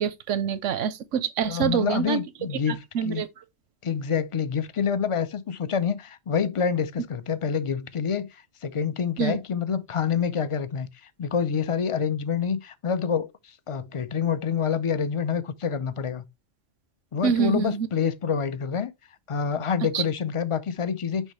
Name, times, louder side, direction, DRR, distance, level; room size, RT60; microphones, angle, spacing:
voice 1, 0.0-2.2 2.7-3.3 9.2-9.4 17.2-17.9 19.9-20.0, right 7 dB, 90° right, 1.1 m, -26 dB
voice 2, 1.5-3.2 3.8-10.9 11.2-16.2 17.1-18.9 19.3-21.3, left 7 dB, 45° left, 0.4 m, -27 dB
6.4 x 5.4 x 3.1 m
omnidirectional pair, 1.2 m